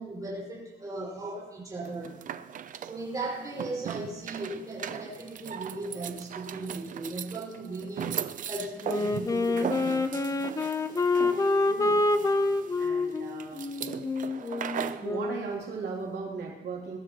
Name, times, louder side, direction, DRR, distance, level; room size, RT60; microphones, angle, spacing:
voice 1, 0.0-2.1 2.8-8.1 8.5-10.3 10.5-10.6 11.1-11.7, right 2 dB, 20° right, -5 dB, 5.6 m, -37 dB
sound 1, 1.8-15.1, right 8 dB, 50° right, 0.6 m, -39 dB
Wind instrument woodwind instrument, 8.8-15.5, left 3 dB, 20° left, 0.7 m, -27 dB
voice 2, 11.6-12.0 12.8-13.7 15.0-17.0, right 4 dB, 75° right, -3 dB, 3.1 m, -37 dB
22.0 x 13.0 x 3.0 m, 1.2 s
wide cardioid pair, 175°, 18 cm